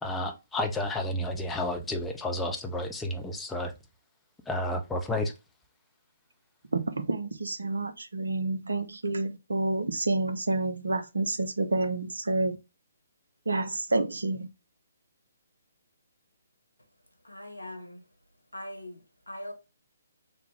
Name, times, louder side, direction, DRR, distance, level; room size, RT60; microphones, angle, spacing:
voice 1, 0.0-3.7 4.5-5.3, left 1 dB, 10° left, 0.5 m, -31 dB
voice 2, 6.7-12.6 13.5-14.5, right 2 dB, 75° right, 0.7 m, -29 dB
voice 3, 17.2-18.1 18.5-19.5, left 1 dB, 90° left, 0.9 m, -41 dB
3.4 x 2.2 x 3.3 m
figure-of-eight pair, 135°, 0 cm